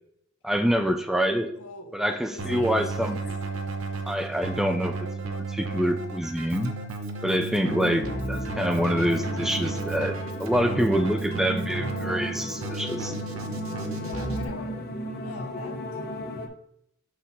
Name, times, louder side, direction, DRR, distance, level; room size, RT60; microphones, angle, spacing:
voice 1, 0.4-1.5 1.9-3.2 4.1-5.0 5.5-6.8 7.2-13.1, equal, ahead, 0.3 m, -26 dB
voice 2, 1.5-3.3 14.0-15.8, left 2 dB, 85° left, 0.8 m, -43 dB
Keyboard (musical), 2.4-14.4, right 3 dB, 80° right, 0.8 m, -33 dB
sound 1, 7.6-16.5, left 1 dB, 50° left, 0.7 m, -35 dB
6.3 x 5.9 x 2.7 m
head